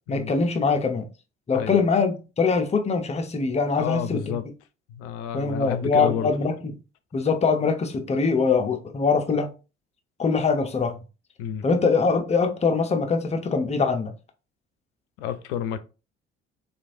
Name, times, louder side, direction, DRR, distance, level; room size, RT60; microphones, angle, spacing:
voice 1, 0.1-1.1 1.5-4.3 5.3-6.7 7.1-9.5 10.2-11.0 11.6-14.1, left 4 dB, 20° left, 0.6 m, -23 dB
voice 2, 3.8-4.4 4.9-6.3 11.4-11.7 15.2-15.8, left 8 dB, 70° left, 0.5 m, -30 dB
3.1 x 2.5 x 2.5 m
figure-of-eight pair, 55°, 33 cm